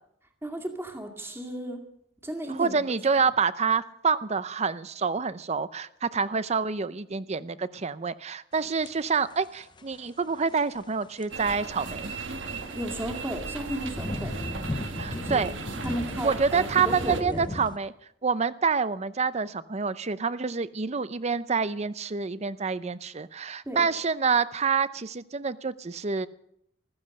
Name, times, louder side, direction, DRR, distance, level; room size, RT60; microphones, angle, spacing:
voice 1, 0.4-1.8 2.2-2.8 12.7-14.4 15.1-15.4 15.8-17.6 23.7-23.9, equal, 15° right, 3 dB, 2.2 m, -34 dB
voice 2, 2.5-12.1 15.0-15.5 16.2-17.9 18.2-26.3, right 5 dB, 35° right, 15 dB, 0.6 m, -27 dB
sound 1, 8.6-9.3 9.8-10.1 10.4-11.4 11.9-17.8, left 1 dB, 25° left, 0.7 m, -37 dB
sound 2, 11.3-17.2, right 3 dB, 85° right, 1.5 m, -36 dB
15.5 x 14.0 x 6.5 m, 0.75 s
head